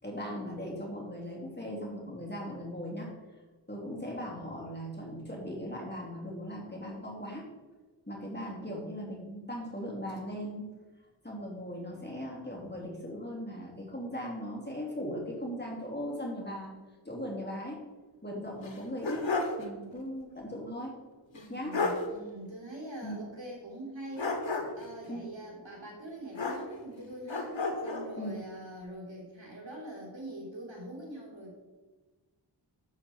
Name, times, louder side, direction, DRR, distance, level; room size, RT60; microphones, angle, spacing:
voice 1, 0.0-3.1 3.7-7.5 8.1-10.7 11.2-16.7 17.0-17.8 18.2-19.3 19.6-21.0 21.5-21.8 23.0-23.2 25.1-25.3 28.2-28.4, equal, 20° left, -3 dB, 3.1 m, -38 dB
sound 1, 18.6-19.7 20.0-20.1 21.4-21.5 21.7-22.1 24.2-24.9 26.3-27.0 27.3-28.1, left 3 dB, 75° left, 1.6 m, -32 dB
voice 2, 21.3-24.4 24.7-31.5, right 1 dB, 70° right, -3 dB, 3.4 m, -44 dB
12.0 x 7.9 x 4.4 m, 1.2 s
wide cardioid pair, 65°, 46 cm